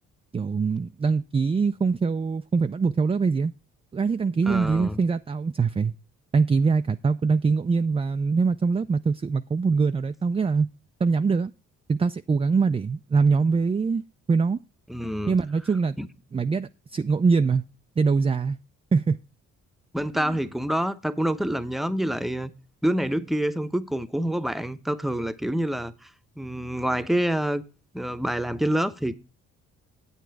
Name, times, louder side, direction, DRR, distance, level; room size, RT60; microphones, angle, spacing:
voice 1, 0.3-3.5 3.9-5.9 6.3-10.7 11.0-11.5 11.9-14.0 14.3-14.6 15.3-16.0 16.3-17.6 18.0-18.6 18.9-19.2 20.1-20.3, right 4 dB, 15° right, 0.4 m, -23 dB
voice 2, 4.4-5.0 14.9-15.4 16.0-16.1 19.9-22.5 22.8-26.1 26.4-27.6 27.9-29.1, right 1 dB, ahead, 0.8 m, -27 dB
8.2 x 8.0 x 4.6 m
hypercardioid pair, 50°, 35 cm